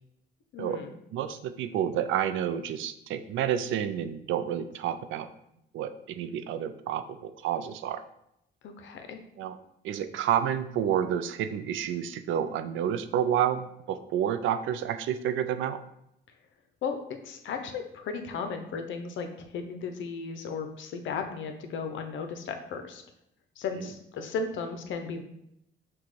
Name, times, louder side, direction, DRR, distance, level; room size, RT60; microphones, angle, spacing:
voice 1, 0.5-0.9 8.6-9.2 16.8-17.0 17.2-23.0 23.6-25.2, left 5 dB, 75° left, 6 dB, 0.7 m, -35 dB
voice 2, 1.1-5.3 5.7-8.0 9.4-9.6 9.8-15.8 23.8-23.9, right 9 dB, 80° right, 10 dB, 0.4 m, -29 dB
6.0 x 2.3 x 3.2 m, 0.79 s
cardioid pair, 90°, 20 cm